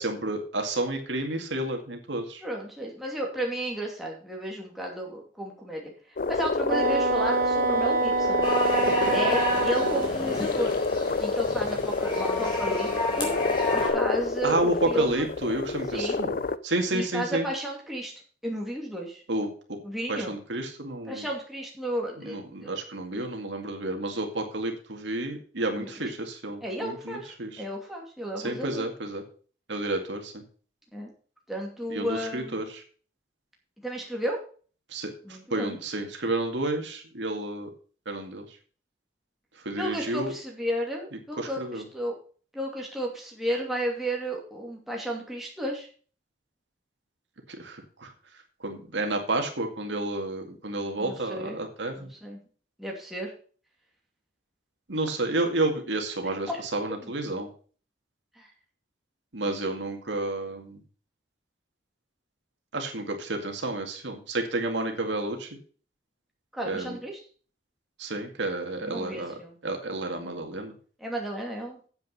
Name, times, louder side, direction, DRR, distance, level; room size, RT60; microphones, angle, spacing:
voice 1, 0.0-2.4 9.0-9.2 14.4-17.5 19.3-19.8 20.1-21.3 22.2-27.6 28.4-29.2 29.7-30.4 31.9-32.8 34.9-37.7 38.1-38.5 39.6-40.3 41.4-41.9 47.6-48.1 48.6-52.1 54.9-57.5 59.3-60.8 62.7-65.5 66.6-67.0 68.0-69.3 69.6-70.7, right 2 dB, 75° right, 3 dB, 2.1 m, -31 dB
voice 2, 2.4-5.9 6.3-8.4 9.1-10.8 11.2-13.3 13.7-15.3 15.9-16.2 16.9-18.1 18.4-19.2 19.8-20.3 21.1-22.7 23.1-23.3 25.7-25.9 26.6-28.9 30.9-31.1 31.5-32.6 33.8-34.4 35.2-35.8 39.8-42.1 42.5-45.9 51.0-51.6 52.0-52.4 52.8-53.3 56.5-56.6 57.0-57.1 58.4-58.5 66.5-67.2 68.8-69.6 70.1-70.4 71.0-71.8, right 1 dB, ahead, -2 dB, 2.5 m, -33 dB
sound 1, 6.2-16.6, left 3 dB, 50° left, 0.5 m, -28 dB
Wind instrument woodwind instrument, 6.7-10.1, right 3 dB, 50° right, 0.8 m, -26 dB
sound 2, 8.4-13.9, left 1 dB, 25° left, 3.9 m, -31 dB
9.2 x 7.8 x 5.5 m, 0.42 s
head